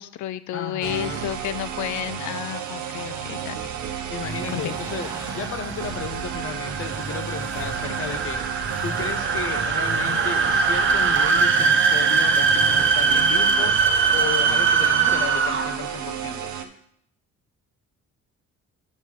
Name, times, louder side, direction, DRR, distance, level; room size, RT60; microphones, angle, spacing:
voice 1, 0.0-3.7 4.5-4.7, left 12 dB, 75° left, 15 dB, 0.5 m, -31 dB
voice 2, 0.5-1.3 4.1-8.4 8.8-13.7 14.1-16.5, left 5 dB, 45° left, 9 dB, 0.9 m, -34 dB
sound 1, 0.8-16.7, right 8 dB, 70° right, 0.9 m, -32 dB
sound 2, 4.2-13.0, right 1 dB, 15° right, 1.4 m, -38 dB
sound 3, 5.2-15.9, right 5 dB, 40° right, 0.8 m, -21 dB
7.5 x 5.3 x 5.0 m, 0.67 s
cardioid pair, 90°, 30 cm